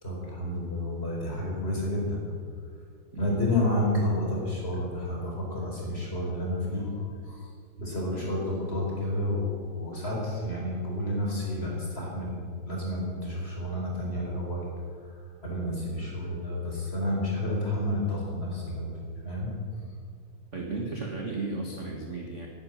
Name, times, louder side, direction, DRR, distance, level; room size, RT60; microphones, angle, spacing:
voice 1, 0.0-2.2 3.2-7.4 7.8-12.4 12.6-14.6 15.4-19.5, left 1 dB, 20° left, -3 dB, 4.5 m, -30 dB
voice 2, 3.1-3.4 8.0-8.3 20.5-22.5, right 3 dB, 40° right, 0 dB, 1.1 m, -35 dB
11.5 x 10.5 x 10.0 m, 2.1 s
omnidirectional pair, 3.6 m